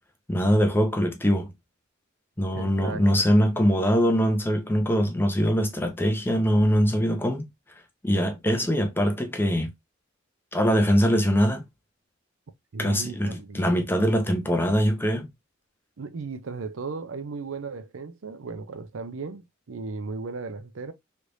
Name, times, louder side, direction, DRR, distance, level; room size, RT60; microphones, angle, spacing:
voice 1, 0.3-1.5 2.4-7.5 8.0-9.7 10.5-11.6 12.8-15.3, equal, 10° left, 0.6 m, -22 dB
voice 2, 2.5-3.2 12.7-13.9 16.0-20.9, right 4 dB, 70° right, 0.5 m, -36 dB
3.3 x 3.2 x 2.6 m
head